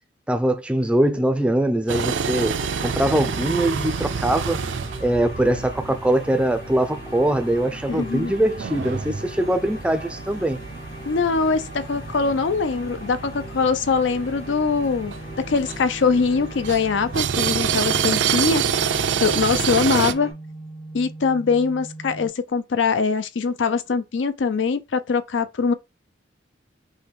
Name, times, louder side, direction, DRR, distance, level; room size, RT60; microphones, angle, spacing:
voice 1, 0.3-2.6 2.8-4.6 5.0-10.6, right 1 dB, 5° right, 0.4 m, -22 dB
sound 1, 1.9-20.1, right 7 dB, 75° right, 0.5 m, -28 dB
sound 2, 2.3-20.3, left 1 dB, 55° left, 2.4 m, -40 dB
sound 3, 6.3-22.3, right 2 dB, 35° left, 0.9 m, -42 dB
voice 2, 7.9-8.3 11.1-15.1 15.5-20.3 20.9-25.7, left 5 dB, 75° left, 0.5 m, -22 dB
5.5 x 2.2 x 3.3 m
head